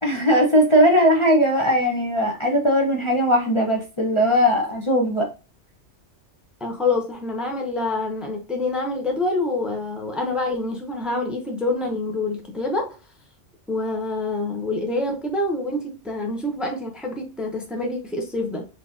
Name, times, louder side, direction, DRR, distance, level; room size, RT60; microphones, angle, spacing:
voice 1, 0.0-5.3, equal, 25° left, 0.9 m, -19 dB
voice 2, 6.6-13.0 13.7-18.6, left 2 dB, ahead, 0.9 m, -26 dB
4.3 x 4.0 x 2.6 m
omnidirectional pair, 1.2 m